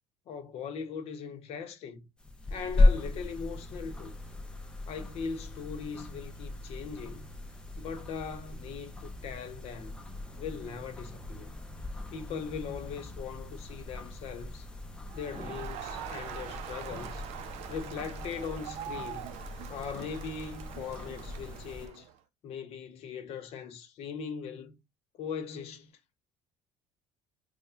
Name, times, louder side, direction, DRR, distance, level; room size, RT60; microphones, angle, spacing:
voice 1, 0.3-2.1 2.5-4.1 4.9-7.2 7.8-10.0 10.4-11.5 12.1-14.7 15.1-17.3 17.7-19.3 19.7-22.1 22.4-24.8 25.2-25.9, left 6 dB, 60° left, 0.8 m, -40 dB
sound 1, 2.2-21.9, left 2 dB, 5° left, 0.6 m, -35 dB
Crowd, 15.1-22.1, right 10 dB, 65° right, 0.4 m, -43 dB
3.4 x 2.1 x 4.3 m
cardioid pair, 145°, 12 cm